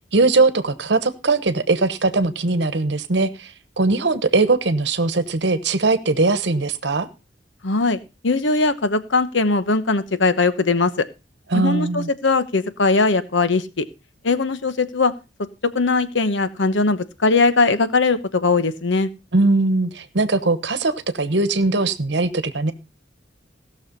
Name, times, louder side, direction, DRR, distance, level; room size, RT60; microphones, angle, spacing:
voice 1, 0.1-7.1 11.5-12.1 19.3-22.7, right 3 dB, 65° right, 12 dB, 1.1 m, -20 dB
voice 2, 7.6-10.9 11.5-13.8 14.2-15.1 15.7-19.1, left 3 dB, 85° left, 13 dB, 1.1 m, -20 dB
17.0 x 6.5 x 5.3 m, 0.29 s
head